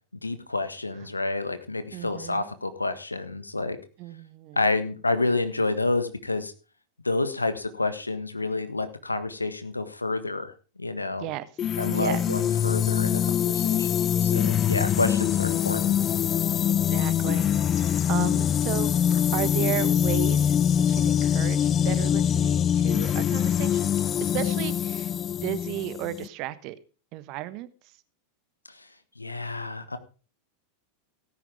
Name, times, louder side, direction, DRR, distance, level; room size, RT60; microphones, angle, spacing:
voice 1, 0.2-3.8 4.5-6.5 7.0-11.3 11.8-16.0 28.7-28.9 29.2-30.0, left 2 dB, 90° left, 1.5 m, -29 dB
voice 2, 1.9-2.5 4.0-4.6 11.2-11.5 11.9-12.2 14.7-14.9 16.9-23.9 24.2-25.1 25.4-26.8 27.1-27.7, right 14 dB, 45° right, 1.2 m, -34 dB
sound 1, 11.6-26.3, left 9 dB, 30° left, 0.5 m, -24 dB
17.0 x 10.0 x 3.5 m
figure-of-eight pair, 90°, 0 cm